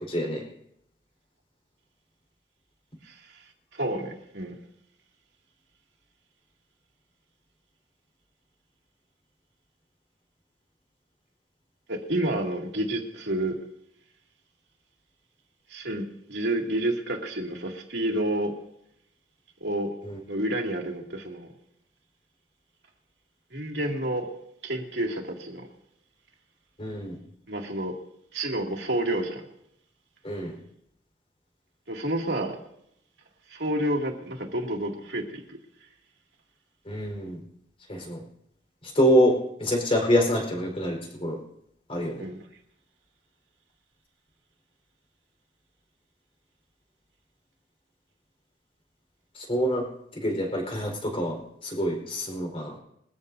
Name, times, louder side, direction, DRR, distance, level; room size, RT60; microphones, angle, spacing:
voice 1, 0.1-0.4 20.0-20.2 26.8-27.1 30.2-30.6 36.8-37.4 37.9-38.2 38.9-41.4 41.9-42.3 49.3-49.8 50.2-52.7, equal, 35° left, 4.4 m, -26 dB
voice 2, 3.7-4.6 11.9-13.6 15.7-18.5 19.6-20.0 20.3-21.5 23.5-24.3 24.6-25.7 27.5-28.0 28.3-29.4 31.9-32.6 33.5-35.6 42.2-42.4, right 1 dB, 80° right, 2.5 m, -29 dB
22.5 x 14.5 x 2.7 m
head